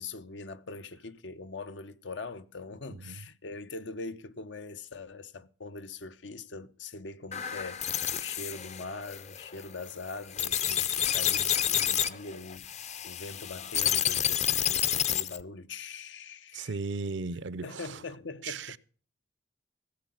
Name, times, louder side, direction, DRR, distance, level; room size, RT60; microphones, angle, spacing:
voice 1, 0.0-12.7 13.0-16.8 17.6-18.8, left 3 dB, 90° left, 0.8 m, -42 dB
sound 1, 7.3-15.4, left 10 dB, 40° left, 0.5 m, -29 dB
voice 2, 16.5-18.0 18.4-18.8, right 4 dB, 80° right, 0.6 m, -36 dB
15.5 x 7.5 x 5.7 m
head